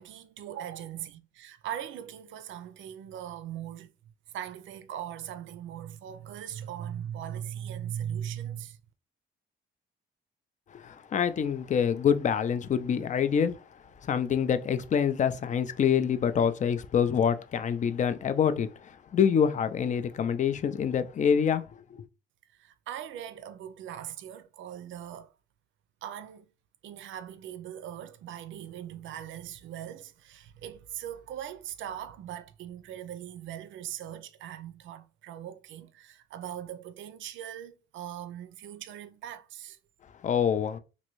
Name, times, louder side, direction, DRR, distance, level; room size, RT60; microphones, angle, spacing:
voice 1, 0.0-3.9 4.3-8.8 22.5-25.3 26.0-26.5 26.8-39.8, right 10 dB, 75° right, 0.5 m, -40 dB
voice 2, 10.7-13.6 14.0-21.6 21.9-22.0 40.2-40.8, left 7 dB, 40° left, 0.4 m, -26 dB
3.0 x 2.6 x 3.0 m
cardioid pair, 90°, 20 cm